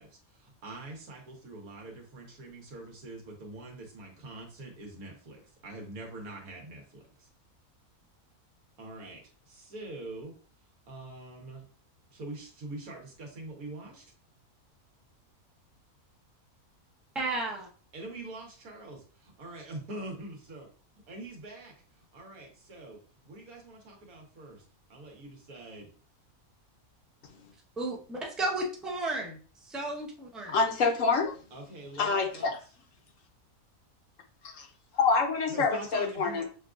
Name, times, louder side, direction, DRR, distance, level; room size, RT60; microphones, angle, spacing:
voice 1, 0.0-7.3 8.8-10.3 10.9-11.6 12.1-14.1 17.9-20.7 21.1-21.7 22.1-23.0 23.2-24.6 24.9-25.9 31.5-32.5 35.5-36.4, right 2 dB, 75° right, 1.6 m, -44 dB
voice 2, 17.2-17.7 27.8-30.6, right 2 dB, ahead, 0.3 m, -33 dB
voice 3, 30.5-31.3 32.0-32.6 34.5-34.7 34.9-36.4, left 4 dB, 65° left, 1.0 m, -26 dB
6.4 x 2.4 x 2.5 m
omnidirectional pair, 1.5 m